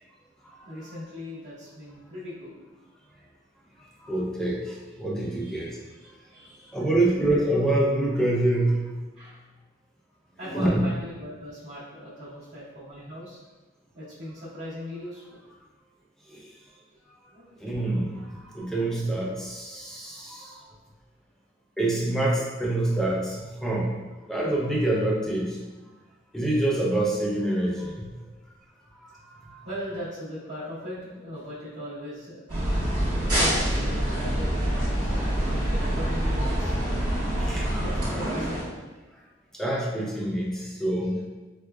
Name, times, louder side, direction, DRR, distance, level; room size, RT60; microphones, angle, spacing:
voice 1, 0.6-2.6 5.4-6.8 9.2-9.4 10.4-13.4 13.9-15.4 17.3-17.7 18.1-18.2 19.9-20.1 29.6-32.4 33.3-37.0 37.7-38.7, equal, 70° right, -14 dB, 1.0 m, -39 dB
voice 2, 4.0-5.8 6.7-8.9 10.5-10.9 16.3-16.5 17.6-20.7 21.8-24.0 24.3-25.6 26.3-28.1 29.0-29.1 29.4-29.6 37.4-37.7 39.6-41.3, right 1 dB, 5° left, -4 dB, 0.4 m, -26 dB
sound 1, 32.5-38.6, equal, 25° right, 1.2 m, -26 dB
4.5 x 2.3 x 2.3 m, 1.2 s
head